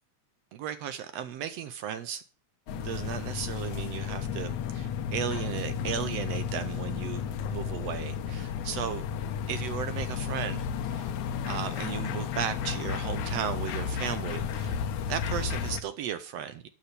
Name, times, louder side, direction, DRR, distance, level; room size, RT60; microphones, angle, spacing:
voice 1, 0.5-2.2 2.7-7.2 7.5-9.1 9.5-11.1 11.5-14.8 15.1-16.7, right 9 dB, 75° right, 1.7 m, -35 dB
sound 1, 2.7-15.8, left 7 dB, 80° left, 2.3 m, -33 dB
11.5 x 6.1 x 6.8 m
omnidirectional pair, 3.4 m